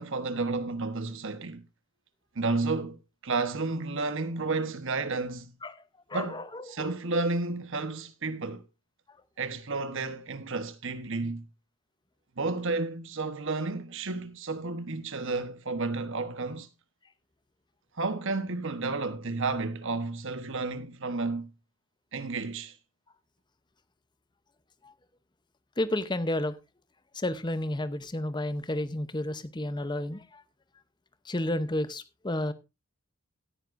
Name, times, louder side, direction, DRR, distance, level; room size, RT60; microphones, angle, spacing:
voice 1, 0.0-1.6 2.3-3.0 3.2-5.5 6.1-8.6 9.4-11.4 12.4-16.7 18.0-21.5 22.1-22.7, right 3 dB, 55° right, 1.1 m, -31 dB
voice 2, 6.1-6.9 24.8-24.9 25.8-26.6 27.1-30.4 31.2-32.5, left 1 dB, 20° left, 0.7 m, -31 dB
16.0 x 9.7 x 2.6 m
head